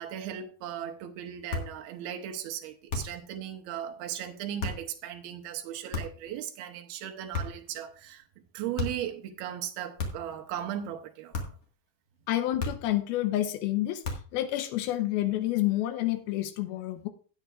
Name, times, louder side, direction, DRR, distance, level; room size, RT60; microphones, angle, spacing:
voice 1, 0.0-8.3 8.5-11.6, right 10 dB, 85° right, 2.9 m, -37 dB
sound 1, 1.5-1.8 2.9-3.3 4.6-4.9 5.9-6.3 7.3-7.7 8.8-9.1 10.0-10.4 11.3-11.7 12.6-13.0 14.0-14.4, left 3 dB, 45° left, 2.3 m, -34 dB
voice 2, 12.3-14.0 14.3-17.1, left 14 dB, 85° left, 2.8 m, -29 dB
15.5 x 9.3 x 2.5 m
omnidirectional pair, 4.3 m